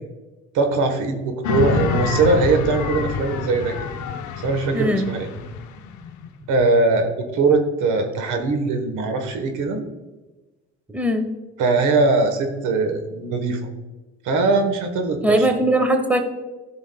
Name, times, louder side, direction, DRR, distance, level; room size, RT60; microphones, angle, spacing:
voice 1, 0.5-3.9 4.4-5.3 6.5-9.8 11.6-13.6 14.2-15.5, right 3 dB, 65° right, 6 dB, 1.3 m, -21 dB
sound 1, 1.4-6.7, left 6 dB, 60° left, 0.9 m, -27 dB
voice 2, 4.7-5.1 10.9-11.2 15.2-16.2, right 1 dB, 5° right, 6 dB, 1.1 m, -19 dB
12.5 x 6.0 x 2.3 m, 1.2 s
supercardioid pair, 80°, 33 cm